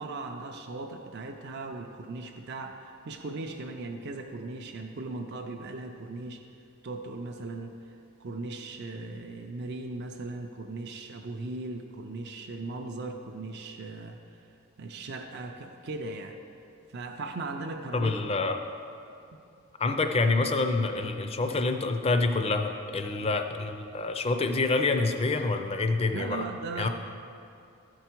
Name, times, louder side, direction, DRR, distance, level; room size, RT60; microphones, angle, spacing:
voice 1, 0.0-6.4 6.8-14.2 14.8-16.4 16.9-18.4 23.2-23.3 26.1-26.9, right 3 dB, 50° right, 3 dB, 0.4 m, -38 dB
voice 2, 17.9-18.6 19.8-26.4 26.8-26.9, left 3 dB, 25° left, 6 dB, 0.4 m, -27 dB
13.0 x 4.6 x 4.5 m, 2.6 s
head